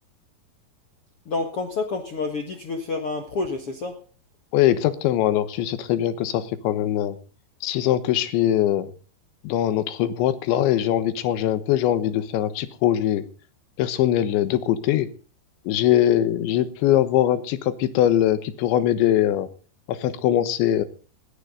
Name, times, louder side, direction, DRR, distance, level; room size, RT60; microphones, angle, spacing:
voice 1, 1.2-4.0, left 3 dB, 60° left, 4 dB, 1.5 m, -28 dB
voice 2, 4.5-7.2 7.6-8.9 9.4-13.3 13.8-15.1 15.7-19.5 19.9-20.9, left 12 dB, 80° left, 13 dB, 3.5 m, -22 dB
19.5 x 13.5 x 3.9 m, 0.37 s
omnidirectional pair, 5.2 m